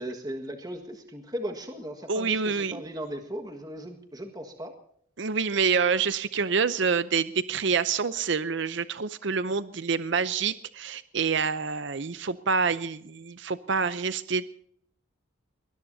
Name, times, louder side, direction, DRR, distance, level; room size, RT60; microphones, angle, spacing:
voice 1, 0.0-4.7, equal, 20° right, 4 dB, 1.6 m, -37 dB
voice 2, 2.1-2.8 5.2-14.5, right 5 dB, 60° right, 13 dB, 0.6 m, -27 dB
22.5 x 20.5 x 2.8 m, 0.65 s
head